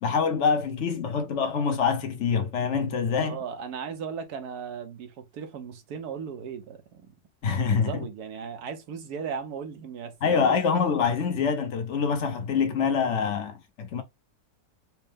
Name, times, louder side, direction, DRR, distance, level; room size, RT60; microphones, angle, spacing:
voice 1, 0.0-3.4 7.4-8.0 10.2-14.0, left 6 dB, 55° left, 1.0 m, -25 dB
voice 2, 3.2-7.0 7.6-10.9, right 6 dB, 80° right, 1.3 m, -37 dB
4.5 x 2.1 x 3.3 m
omnidirectional pair, 1.6 m